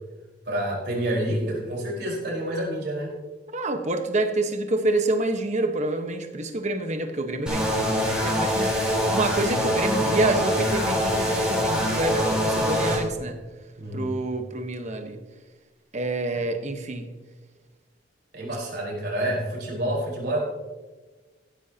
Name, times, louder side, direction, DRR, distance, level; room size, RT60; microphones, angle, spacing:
voice 1, 0.4-3.1 13.8-14.1 16.3-16.4 18.3-20.4, right 1 dB, 65° right, -3 dB, 4.6 m, -28 dB
voice 2, 3.5-7.9 8.2-8.7 9.1-13.4 13.9-15.2 15.9-17.1, right 2 dB, 40° right, 6 dB, 1.3 m, -27 dB
sound 1, 7.5-13.0, equal, 5° right, 4.0 m, -24 dB
15.5 x 13.0 x 2.9 m, 1.3 s
head